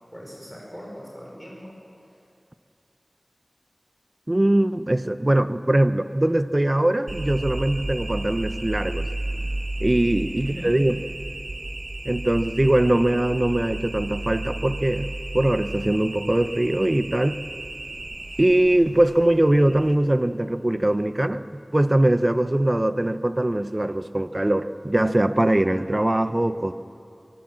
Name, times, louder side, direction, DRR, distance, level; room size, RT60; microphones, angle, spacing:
voice 1, 0.1-1.8 2.1-2.2 10.0-10.7, equal, 10° right, -3 dB, 5.0 m, -41 dB
voice 2, 4.3-9.1 9.8-11.0 12.0-17.4 18.4-26.7, right 1 dB, 30° right, 12 dB, 0.8 m, -21 dB
sound 1, 7.1-20.0, right 1 dB, 60° right, 1.0 m, -33 dB
23.0 x 16.5 x 7.5 m, 2.6 s
wide cardioid pair, 50°, 0 cm